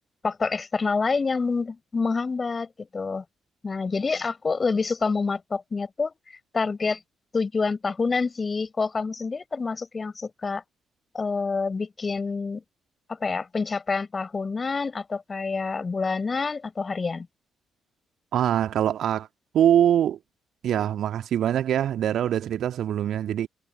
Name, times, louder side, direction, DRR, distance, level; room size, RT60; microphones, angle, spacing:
voice 1, 0.2-3.2 3.6-6.1 6.5-7.0 7.3-10.6 11.1-12.6 13.1-17.3, left 4 dB, 35° left, 6.7 m, -27 dB
voice 2, 18.3-19.3 19.5-20.2 20.6-23.5, right 10 dB, 60° right, 1.8 m, -23 dB
figure-of-eight pair, 40°, 0 cm